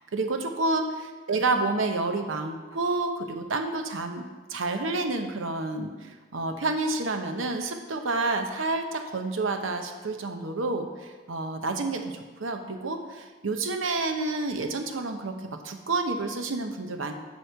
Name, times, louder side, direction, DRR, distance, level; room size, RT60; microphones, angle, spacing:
voice 1, 0.0-17.1, right 3 dB, 80° right, 5 dB, 0.8 m, -29 dB
9.4 x 3.2 x 6.7 m, 1.3 s
head